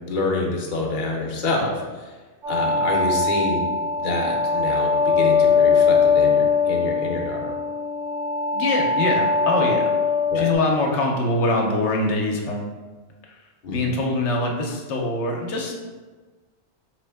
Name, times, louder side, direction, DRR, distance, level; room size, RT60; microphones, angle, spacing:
voice 1, 0.1-2.1 2.5-3.7 4.0-7.5 10.3-10.5 13.6-13.8, left 2 dB, 50° left, -1 dB, 0.7 m, -27 dB
sound 1, 2.4-10.5, left 4 dB, 85° right, 1.5 m, -21 dB
voice 2, 8.5-9.9 10.3-12.7 13.7-15.7, left 2 dB, 80° left, 0 dB, 1.0 m, -23 dB
4.4 x 3.1 x 3.3 m, 1.3 s
omnidirectional pair, 1.2 m